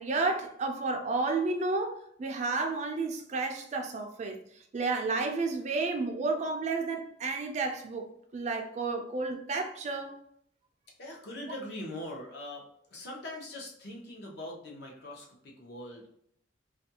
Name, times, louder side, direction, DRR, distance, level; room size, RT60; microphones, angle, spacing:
voice 1, 0.0-4.4 4.7-10.2, right 3 dB, 35° right, 0.3 m, -31 dB
voice 2, 11.0-12.6 12.9-16.1, left 1 dB, 55° left, 0.7 m, -42 dB
2.5 x 2.2 x 2.7 m
head